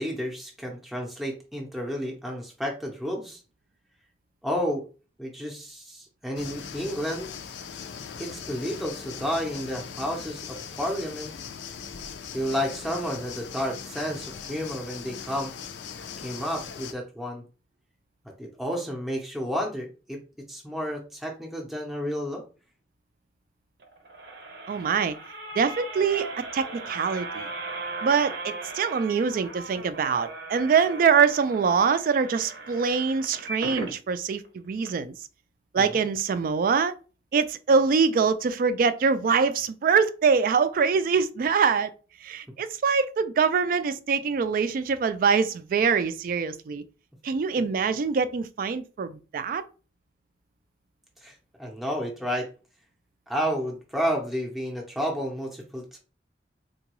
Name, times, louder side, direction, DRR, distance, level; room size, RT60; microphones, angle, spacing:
voice 1, 0.0-3.4 4.4-4.9 5.2-7.3 8.2-11.3 12.3-15.5 16.2-17.4 18.4-20.2 20.5-22.4 35.8-36.0 51.2-51.3 51.6-52.5 53.3-56.0, equal, ahead, 0.5 m, -31 dB
sound 1, 6.3-16.9, left 7 dB, 80° left, 0.4 m, -40 dB
sound 2, 23.8-34.0 34.4-34.5 34.8-34.9, right 3 dB, 70° right, 0.7 m, -38 dB
voice 2, 24.7-25.2 25.6-27.5 28.0-35.1 35.7-36.9 37.3-41.9 42.2-46.8 47.2-49.6, right 5 dB, 50° right, 0.3 m, -24 dB
3.7 x 2.2 x 2.9 m
head